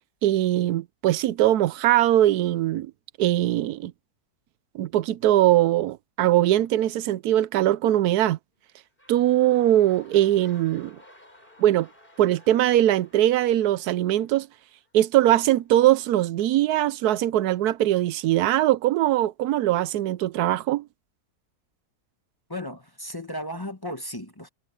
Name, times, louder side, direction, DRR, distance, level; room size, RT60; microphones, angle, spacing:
voice 1, 0.2-2.9 3.2-3.9 4.7-8.4 9.1-11.0 11.6-11.9 12.2-14.5 14.9-20.9, right 13 dB, 85° right, 1.1 m, -21 dB
sound 1, 8.5-14.9 15.6-15.7, left 1 dB, 35° left, 6.4 m, -54 dB
voice 2, 22.5-24.5, left 1 dB, 15° left, 1.0 m, -35 dB
omnidirectional pair, 1.6 m